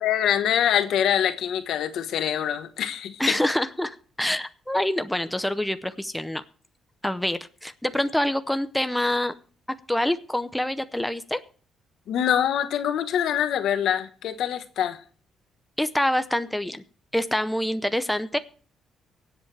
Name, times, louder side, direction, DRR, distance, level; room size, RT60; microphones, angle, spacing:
voice 1, 0.0-3.4 12.1-15.0, left 9 dB, 75° left, 1.2 m, -24 dB
voice 2, 3.2-6.4 7.0-9.3 9.9-11.4 15.8-16.8 17.1-18.4, left 1 dB, 5° left, 0.6 m, -26 dB
24.0 x 8.0 x 3.4 m
cardioid pair, 120°, 0 cm